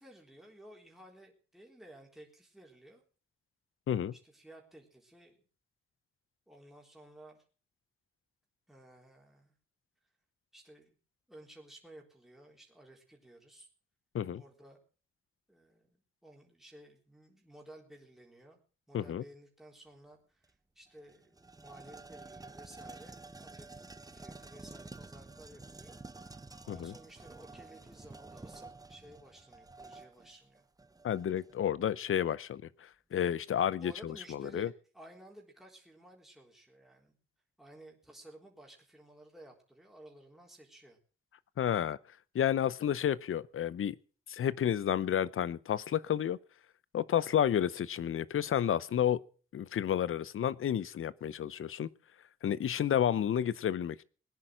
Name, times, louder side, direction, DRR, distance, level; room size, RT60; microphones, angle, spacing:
voice 1, 0.0-3.0 4.1-5.4 6.5-7.4 8.7-9.5 10.5-10.9 11.3-13.7 14.3-14.8 15.5-18.6 18.9-23.7 24.1-26.0 26.6-30.7 33.5-37.2 37.6-41.0, right 1 dB, ahead, 3.9 m, -55 dB
sound 1, 20.4-20.5 20.9-31.6, right 3 dB, 15° right, 0.8 m, -50 dB
voice 2, 31.0-34.7 41.6-42.0 42.3-44.0 44.3-46.4 46.9-49.2 49.5-51.9 52.4-54.0, left 9 dB, 75° left, 0.7 m, -31 dB
19.0 x 10.0 x 6.3 m
wide cardioid pair, 100°, 21 cm